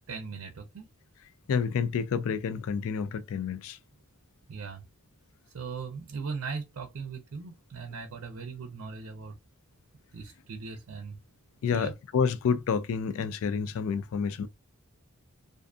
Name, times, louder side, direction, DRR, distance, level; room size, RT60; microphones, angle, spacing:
voice 1, 0.1-0.9 4.5-4.8 5.5-9.3 10.1-11.2 11.7-11.9, right 5 dB, 65° right, 0.5 m, -39 dB
voice 2, 1.5-3.8 11.6-14.5, left 6 dB, 65° left, 0.3 m, -29 dB
2.5 x 2.4 x 2.3 m
head